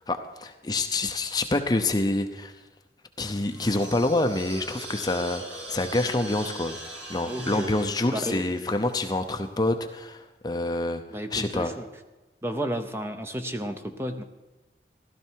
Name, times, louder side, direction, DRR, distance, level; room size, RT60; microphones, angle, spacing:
voice 1, 0.1-2.5 3.2-6.8 7.1-11.0 11.3-11.7, left 2 dB, 20° left, 7 dB, 0.7 m, -27 dB
sound 1, 3.2-9.5, right 1 dB, 80° right, 5.1 m, -41 dB
voice 2, 7.3-7.7 8.1-8.4 11.1-11.9 12.4-14.2, equal, 15° right, 7 dB, 0.8 m, -32 dB
15.0 x 12.5 x 4.6 m, 1.1 s
head